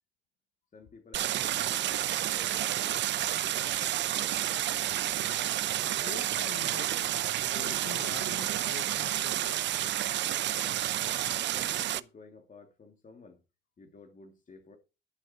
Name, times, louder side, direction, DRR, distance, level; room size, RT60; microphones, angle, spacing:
voice 1, 0.7-3.0 3.4-4.9 10.6-13.4 13.8-14.8, left 3 dB, 40° left, 2.8 m, -53 dB
Stream, 1.1-12.0, right 13 dB, 65° right, 0.5 m, -30 dB
voice 2, 5.8-9.6, left 11 dB, 75° left, 0.7 m, -46 dB
11.5 x 7.3 x 4.5 m
cardioid pair, 90°, 20 cm